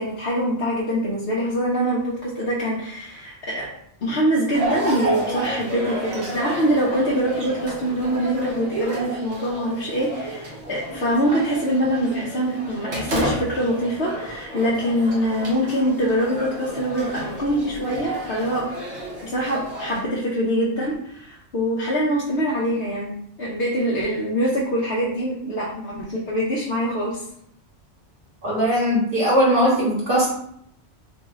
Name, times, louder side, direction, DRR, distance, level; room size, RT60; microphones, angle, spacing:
voice 1, 0.0-3.7 4.0-18.7 19.2-27.2, equal, 60° left, -5 dB, 1.1 m, -24 dB
sound 1, 4.5-20.0, right 1 dB, 65° right, 1.4 m, -31 dB
voice 2, 28.4-30.3, equal, 45° right, -6 dB, 1.9 m, -19 dB
4.1 x 3.0 x 3.6 m, 0.70 s
omnidirectional pair, 1.2 m